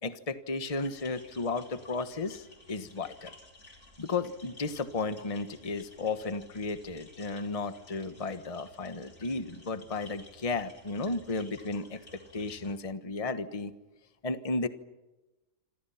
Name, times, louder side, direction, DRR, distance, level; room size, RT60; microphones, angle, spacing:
voice 1, 0.0-3.3 4.0-13.7 14.2-14.7, left 3 dB, 25° left, 10 dB, 1.3 m, -34 dB
sound 1, 0.6-12.8, left 2 dB, 55° left, 4.4 m, -54 dB
28.0 x 26.5 x 5.8 m, 1.0 s
omnidirectional pair, 1.7 m